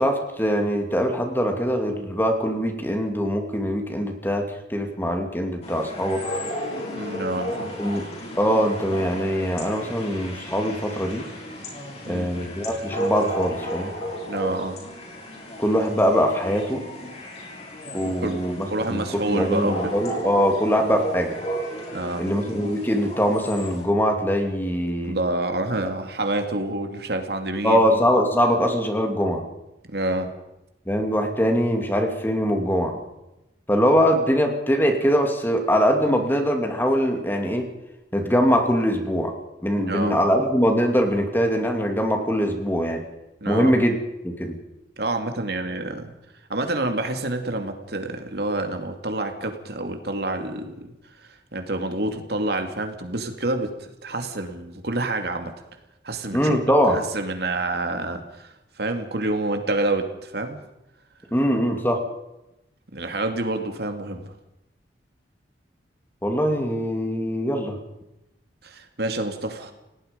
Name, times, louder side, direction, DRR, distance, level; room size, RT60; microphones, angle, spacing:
voice 1, 0.0-6.2 7.7-8.1 8.4-11.3 12.1-13.9 15.6-16.8 17.9-21.4 22.2-25.2 27.6-29.4 30.9-33.0 33.7-37.7 38.1-39.3 39.6-43.0 43.5-44.0 44.2-44.5 56.3-57.0 61.3-62.0 66.2-67.8, equal, 10° left, 4 dB, 2.6 m, -22 dB
sound 1, 5.6-23.8, equal, 35° left, 6.1 m, -34 dB
voice 2, 7.0-7.7 12.1-12.3 14.3-14.8 18.0-18.4 18.7-20.0 21.9-22.3 25.0-27.8 29.9-30.3 39.8-40.2 43.4-43.7 45.0-46.1 46.5-50.9 51.5-53.7 54.0-55.5 56.0-56.6 56.9-60.6 62.9-64.2 68.6-69.7, right 2 dB, 60° right, 6 dB, 2.6 m, -28 dB
28.5 x 18.0 x 5.3 m, 0.93 s
head